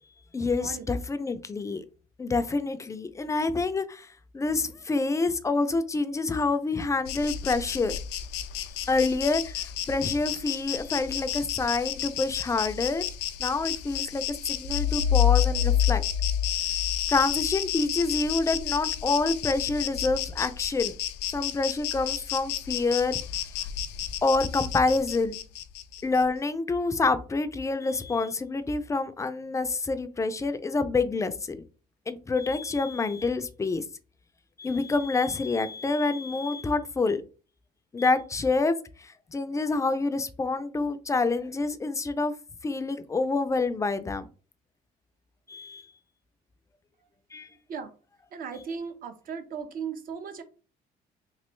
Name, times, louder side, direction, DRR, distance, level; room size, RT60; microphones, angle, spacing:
voice 1, 0.3-1.9 2.2-4.1 4.3-8.0 8.9-13.1 13.4-16.0 17.1-20.9 21.3-23.2 24.2-25.4 26.0-31.6 32.1-33.8 34.6-37.2 37.9-42.3 42.6-44.3 45.5-45.8 47.3-47.5, left 3 dB, 20° left, 0.4 m, -27 dB
Insect, 7.1-26.2, left 11 dB, 90° left, 0.4 m, -33 dB
sound 1, 14.7-17.5, left 9 dB, 75° right, 1.4 m, -24 dB
voice 2, 48.3-50.4, right 6 dB, 55° right, 0.8 m, -36 dB
3.1 x 2.9 x 3.1 m
cardioid pair, 110°, 17 cm